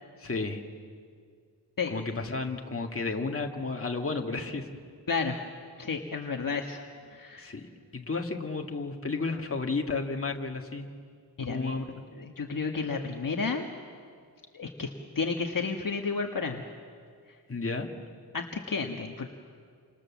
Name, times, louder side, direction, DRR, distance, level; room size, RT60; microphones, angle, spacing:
voice 1, 0.2-0.6 1.9-4.7 7.4-10.9 11.5-12.0 17.5-17.9, left 3 dB, 30° left, 2 dB, 2.2 m, -32 dB
voice 2, 5.1-5.4 5.8-6.8 7.1-7.5 11.4-11.8 12.1-13.7 14.5-14.9 15.1-16.6 18.3-19.3, left 4 dB, 50° left, 2 dB, 1.6 m, -32 dB
29.5 x 27.0 x 7.4 m, 2.1 s
wide cardioid pair, 120°, 42 cm